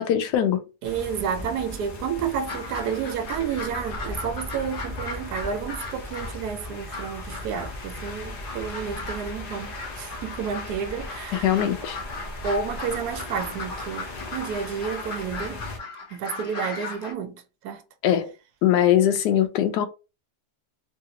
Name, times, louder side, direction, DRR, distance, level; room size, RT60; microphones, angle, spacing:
voice 1, 0.0-0.6 11.4-12.0 18.0-18.3 18.6-19.9, left 10 dB, 85° left, 1.2 m, -21 dB
sound 1, 0.8-15.8, left 1 dB, 60° left, 0.5 m, -38 dB
voice 2, 0.8-11.5 12.4-15.6 16.1-17.8, right 7 dB, 75° right, 1.1 m, -31 dB
sound 2, 2.5-17.1, left 3 dB, 45° left, 0.8 m, -38 dB
3.1 x 2.4 x 2.8 m
omnidirectional pair, 1.7 m